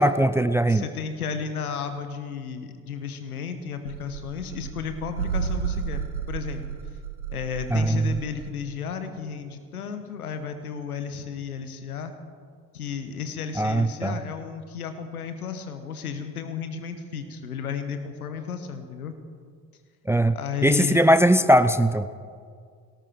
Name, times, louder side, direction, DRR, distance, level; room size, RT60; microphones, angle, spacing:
voice 1, 0.0-0.8 7.7-8.2 13.6-14.2 20.1-20.4 20.6-22.1, right 1 dB, 5° right, 13 dB, 0.5 m, -20 dB
voice 2, 0.7-6.0 6.3-6.6 7.3-12.1 12.7-19.1 20.3-21.0, left 6 dB, 80° left, 9 dB, 1.2 m, -33 dB
sound 1, 3.9-8.5, right 7 dB, 85° right, 0.6 m, -32 dB
18.5 x 17.5 x 4.4 m, 2.1 s
figure-of-eight pair, 50°, 43 cm